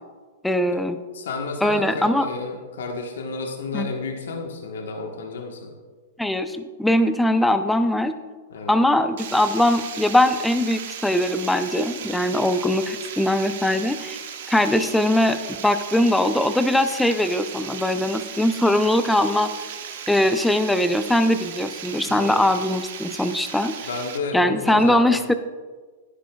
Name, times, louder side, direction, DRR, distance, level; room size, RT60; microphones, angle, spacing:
voice 1, 0.4-1.0 1.6-2.3 3.7-3.9 6.2-8.1 8.7-14.2 14.5-19.5 20.1-23.7 24.3-25.3, left 1 dB, 5° left, 10 dB, 0.5 m, -21 dB
voice 2, 1.1-5.7 8.5-8.7 22.1-22.4 23.8-25.2, left 3 dB, 80° left, 2 dB, 1.3 m, -31 dB
Water, 9.2-24.2, right 8 dB, 65° right, 1.1 m, -36 dB
10.5 x 10.5 x 2.3 m, 1.4 s
hypercardioid pair, 130°, 0 cm